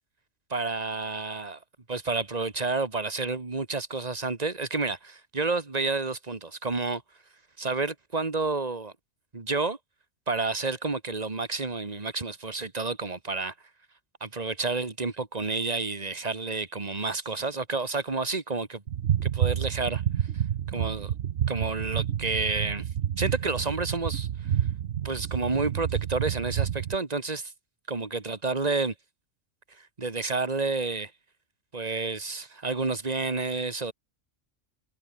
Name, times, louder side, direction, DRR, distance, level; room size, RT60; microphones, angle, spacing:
voice 1, 0.5-1.6 1.9-7.0 7.6-8.9 9.3-9.8 10.3-13.5 14.2-18.8 19.2-20.0 20.7-21.1 21.5-22.8 23.2-24.3 25.0-27.5 27.9-28.9 29.8-31.1 31.7-33.9, right 3 dB, 30° right, 2.0 m, -30 dB
sound 1, 18.9-26.9, right 10 dB, 70° right, 1.1 m, -29 dB
omnidirectional pair, 1.3 m